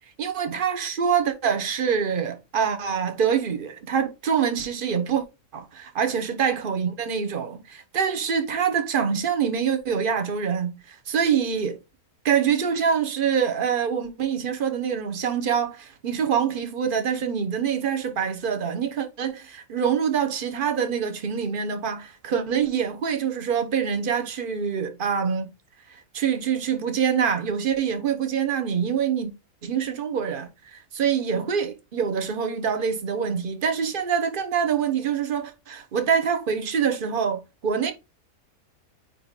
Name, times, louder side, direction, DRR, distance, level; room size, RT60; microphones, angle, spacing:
voice 1, 0.2-5.2 5.5-11.8 12.2-25.5 25.9-29.3 29.6-37.9, right 7 dB, 40° right, 1.2 m, -25 dB
9.2 x 3.2 x 4.0 m
omnidirectional pair, 1.6 m